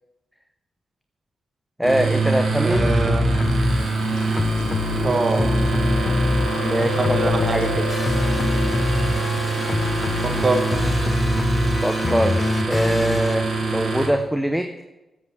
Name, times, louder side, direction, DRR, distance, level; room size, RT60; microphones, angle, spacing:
voice 1, 1.8-2.9 6.6-7.2 7.5-7.8 11.8-12.4 12.7-14.7, equal, 5° right, 7 dB, 0.7 m, -23 dB
sound 1, 1.8-14.1, right 3 dB, 70° right, 2.4 m, -25 dB
voice 2, 2.6-3.3 5.0-5.5 6.8-7.6 10.2-10.9, right 2 dB, 45° right, 4 dB, 1.7 m, -24 dB
sound 2, 2.7-3.8 4.3-6.7 7.0-13.4, left 2 dB, 40° left, 0.7 m, -24 dB
Chewing mastication, 3.4-12.4, left 5 dB, 90° left, 0.9 m, -34 dB
7.9 x 7.4 x 6.9 m, 1.0 s
supercardioid pair, 45°, 0 cm